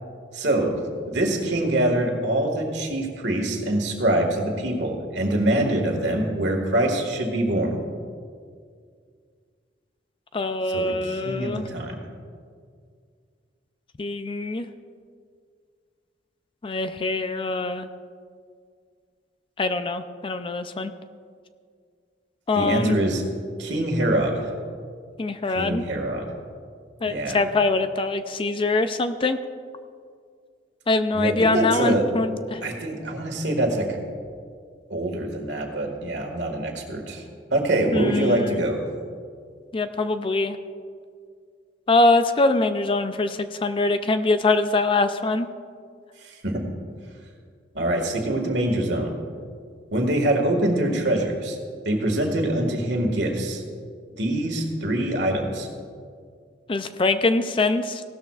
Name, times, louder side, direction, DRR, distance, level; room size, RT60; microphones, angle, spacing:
voice 1, 0.3-7.8 10.7-12.0 22.5-23.2 23.6-24.5 25.5-26.3 27.0-27.4 31.1-32.1 32.6-34.0 34.9-37.2 37.5-38.8 46.2-46.7 47.7-49.1 49.9-51.6 51.9-53.6 54.2-55.7, right 1 dB, 70° right, 2 dB, 1.8 m, -24 dB
voice 2, 10.3-11.7 14.0-14.7 16.6-17.9 19.6-20.9 22.5-23.0 25.2-25.8 27.0-29.4 30.9-32.7 37.9-38.6 39.7-40.6 41.9-45.5 56.7-58.0, left 3 dB, 30° left, 10 dB, 0.4 m, -23 dB
17.0 x 13.0 x 2.4 m, 2.1 s
head